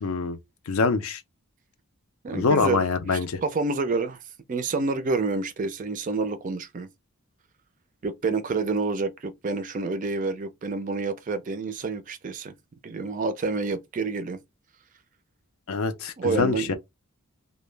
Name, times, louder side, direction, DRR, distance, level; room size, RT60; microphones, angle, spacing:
voice 1, 0.0-0.4 0.7-1.2 2.3-3.4 15.7-16.7, left 4 dB, 70° left, 0.4 m, -24 dB
voice 2, 2.2-4.2 4.5-6.9 8.0-12.5 12.8-14.4 16.2-16.7, right 3 dB, 35° right, 0.3 m, -28 dB
2.1 x 2.0 x 3.1 m
head